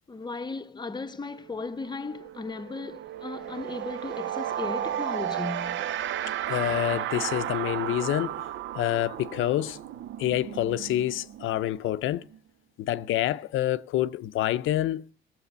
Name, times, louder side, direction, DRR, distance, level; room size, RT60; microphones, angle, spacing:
voice 1, 0.1-5.9, left 3 dB, 20° left, 0.8 m, -36 dB
sound 1, 1.3-1.5 1.8-12.4, right 11 dB, 70° right, 0.6 m, -34 dB
voice 2, 6.5-8.4 8.7-9.8 10.2-12.3 12.8-15.1, left 13 dB, 85° left, 0.6 m, -27 dB
16.5 x 7.6 x 8.0 m
cardioid pair, 90°, 20 cm